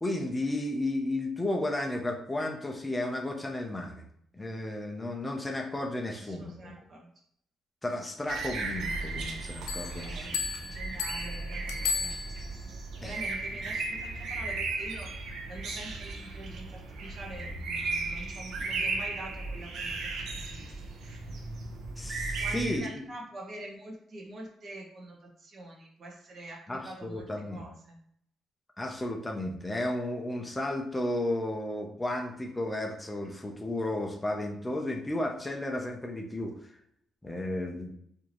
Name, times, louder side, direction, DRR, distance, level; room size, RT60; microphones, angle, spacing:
voice 1, 0.0-4.0 4.3-6.7 7.8-10.4 13.0-13.1 22.0-22.9 26.7-27.6 28.8-36.7 37.2-37.9, left 1 dB, 10° left, 2 dB, 0.5 m, -33 dB
voice 2, 6.1-7.1 9.9-12.2 13.0-20.7 22.4-28.0, right 1 dB, 35° right, 0 dB, 0.9 m, -45 dB
sound 1, 8.3-22.8, right 3 dB, 60° right, 0.6 m, -36 dB
Bell, 9.7-12.7, left 5 dB, 85° left, 0.5 m, -35 dB
4.7 x 2.6 x 2.9 m, 0.69 s
cardioid pair, 170°, 0 cm